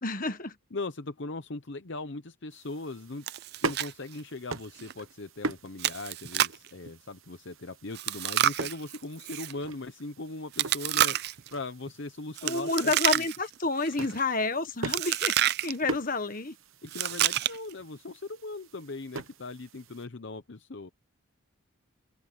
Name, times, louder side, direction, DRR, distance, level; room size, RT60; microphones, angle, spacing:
voice 1, 0.0-0.5 12.4-16.5, left 3 dB, 40° left, 1.5 m, -29 dB
voice 2, 0.7-3.3 3.6-13.3 14.1-14.2 16.8-20.9, left 2 dB, 55° left, 0.8 m, -39 dB
sound 1, 2.5-20.1, right 3 dB, 70° right, 1.1 m, -42 dB
Chewing mastication, 3.3-3.9 4.2-4.3 4.8-4.9 5.8-6.7 7.9-9.5 10.5-11.5 12.4-13.5 13.8-14.2 14.9-15.7 16.9-17.7, right 11 dB, 50° right, 0.5 m, -28 dB
open air
head